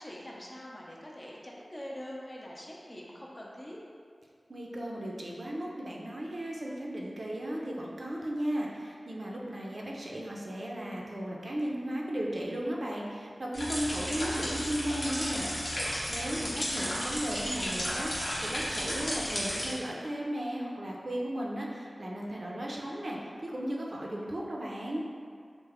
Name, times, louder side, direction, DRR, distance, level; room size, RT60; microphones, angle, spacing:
voice 1, 0.0-3.8 16.2-16.7, equal, 25° left, -3 dB, 0.5 m, -44 dB
voice 2, 4.5-15.5 16.1-25.0, right 1 dB, 55° right, -3 dB, 0.4 m, -35 dB
sound 1, 13.5-19.7, equal, 75° left, 0.8 m, -33 dB
3.2 x 2.1 x 3.4 m, 2.2 s
wide cardioid pair, 80°, 0 cm